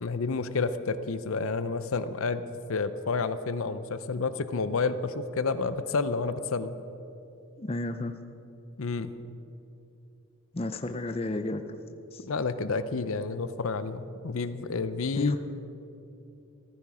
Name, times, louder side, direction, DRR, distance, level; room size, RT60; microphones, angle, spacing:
voice 1, 0.0-2.4 2.7-6.8 8.8-9.1 12.2-15.3, left 4 dB, 70° left, 13 dB, 0.6 m, -30 dB
voice 2, 7.6-8.1 10.5-11.6 12.1-12.2 15.2-15.4, left 2 dB, 25° left, 8 dB, 0.5 m, -31 dB
15.0 x 14.0 x 4.9 m, 2.8 s
head